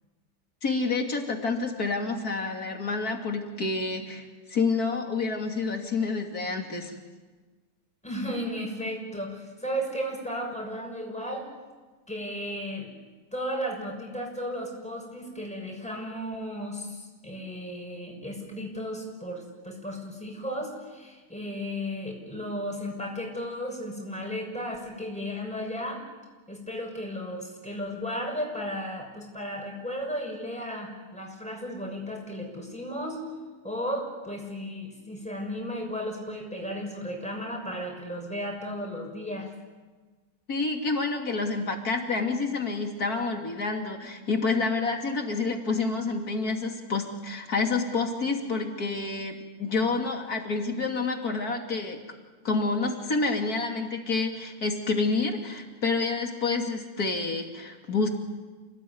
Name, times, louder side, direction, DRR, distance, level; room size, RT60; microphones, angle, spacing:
voice 1, 0.6-6.9 40.5-52.0 52.5-58.1, left 3 dB, 70° left, 3 dB, 3.4 m, -28 dB
voice 2, 8.0-11.5 12.1-12.9 13.3-26.0 26.5-33.2 33.6-39.5, equal, 5° left, 0 dB, 6.4 m, -34 dB
29.5 x 19.0 x 9.6 m, 1.3 s
omnidirectional pair, 1.7 m